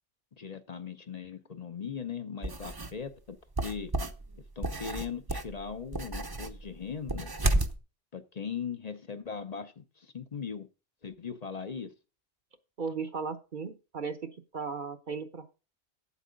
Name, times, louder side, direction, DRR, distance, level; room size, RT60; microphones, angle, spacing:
voice 1, 0.4-3.4 3.6-3.9 4.6-7.3 8.1-10.7 11.0-11.9, left 6 dB, 40° left, 0.8 m, -39 dB
sound 1, 2.4-3.0 3.6-7.8, right 2 dB, 25° right, 0.8 m, -32 dB
voice 2, 12.8-15.6, right 5 dB, 50° right, 1.0 m, -36 dB
8.4 x 8.3 x 5.1 m
omnidirectional pair, 1.1 m